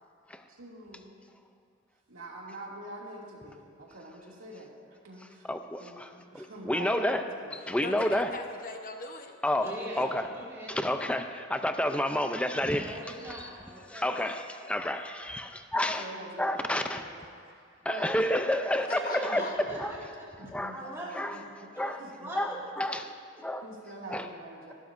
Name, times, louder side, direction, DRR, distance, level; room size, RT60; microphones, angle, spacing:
voice 1, 0.5-1.2 2.1-4.7 5.0-5.5 5.8-7.6 15.7-17.1 17.8-18.1 19.2-19.5 20.4-20.8 21.3-21.7 22.0-22.3 23.6-24.7, right 2 dB, 85° right, -3 dB, 2.5 m, -45 dB
voice 2, 5.5-7.2 7.5-8.3 9.4-9.7 10.0-10.2 10.7-13.0 13.3-13.5 13.9-16.1 16.4-17.0 17.8-19.4 19.8-19.9 20.5-20.8 21.1-21.4 21.8-22.0 22.3-23.1 23.4-23.6 24.1-24.3, left 1 dB, 5° left, 7 dB, 0.5 m, -30 dB
voice 3, 7.8-10.1 18.9-19.5, left 3 dB, 45° left, 4 dB, 1.1 m, -41 dB
voice 4, 9.6-10.7 12.7-14.1 18.9-20.0 20.7-21.2 21.7-21.9 22.2-22.6, right 1 dB, 15° right, -7 dB, 2.3 m, -41 dB
25.0 x 11.5 x 2.7 m, 2.3 s
head